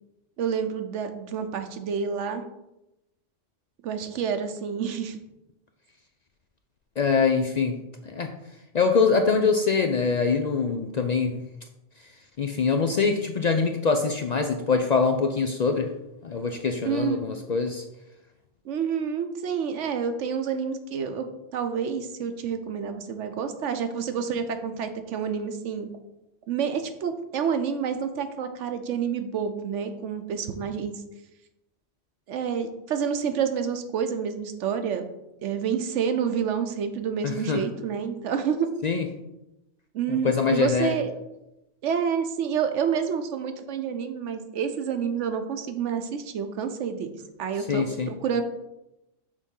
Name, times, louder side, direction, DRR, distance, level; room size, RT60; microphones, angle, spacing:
voice 1, 0.4-2.4 3.8-5.2 16.8-17.2 18.6-21.3 21.5-25.9 26.5-31.0 32.3-35.0 35.4-38.7 39.9-41.1 41.8-48.4, right 7 dB, 80° right, 8 dB, 1.0 m, -28 dB
voice 2, 7.0-7.8 8.0-8.3 8.7-11.4 12.4-15.9 16.2-17.8 37.2-37.6 38.8-39.1 40.1-40.9 47.7-48.1, left 5 dB, 60° left, 5 dB, 0.4 m, -24 dB
6.5 x 3.6 x 5.4 m, 0.91 s
omnidirectional pair, 1.2 m